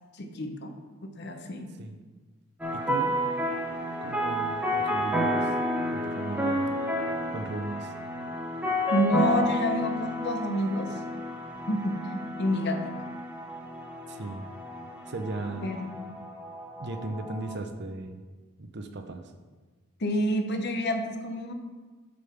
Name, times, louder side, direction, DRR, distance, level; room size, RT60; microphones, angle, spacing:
voice 1, 0.1-0.7 1.0-1.7 8.9-11.0 11.7-12.9 15.6-15.9 20.0-21.5, equal, 50° left, 5 dB, 0.8 m, -28 dB
sound 1, 2.6-17.6, equal, 5° right, 0.9 m, -31 dB
voice 2, 2.7-3.1 4.0-5.5 5.9-6.7 7.3-7.9 14.1-14.5 15.1-15.7 16.8-18.2 18.6-19.2, right 2 dB, 50° right, 7 dB, 0.6 m, -36 dB
6.8 x 5.4 x 5.8 m, 1.3 s
head